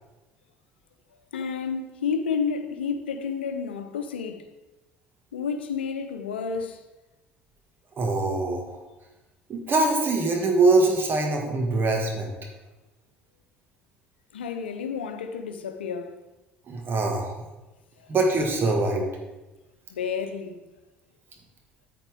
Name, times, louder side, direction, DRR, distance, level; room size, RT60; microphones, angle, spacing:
voice 1, 1.3-4.5 5.3-6.8 14.3-16.2 18.0-18.1 19.9-20.6, left 6 dB, 85° left, 0.7 m, -30 dB
voice 2, 8.0-8.8 9.5-12.3 16.7-17.3 18.1-19.1, right 2 dB, 40° right, 1.8 m, -23 dB
9.0 x 8.5 x 3.6 m
hypercardioid pair, 65°, 6 cm